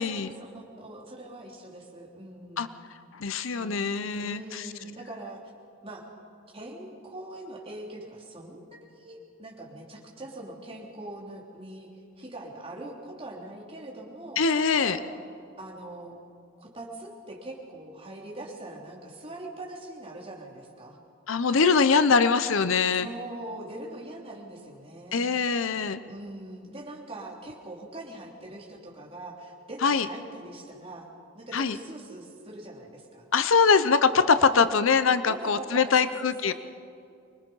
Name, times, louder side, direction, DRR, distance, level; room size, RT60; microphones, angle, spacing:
voice 1, 0.0-2.7 3.6-3.8 4.2-5.4 5.8-6.0 6.5-11.9 12.2-14.4 14.8-15.0 15.6-16.2 16.6-21.0 22.9-25.3 26.1-31.1 31.3-33.3 34.5-34.7 35.3-36.5, right 1 dB, 25° right, -2 dB, 3.3 m, -42 dB
voice 2, 3.1-4.6 14.4-15.0 21.3-23.1 25.1-26.0 29.8-30.1 31.5-31.8 33.3-36.5, left 5 dB, 65° left, 12 dB, 0.7 m, -23 dB
25.0 x 21.0 x 5.6 m, 2.4 s
head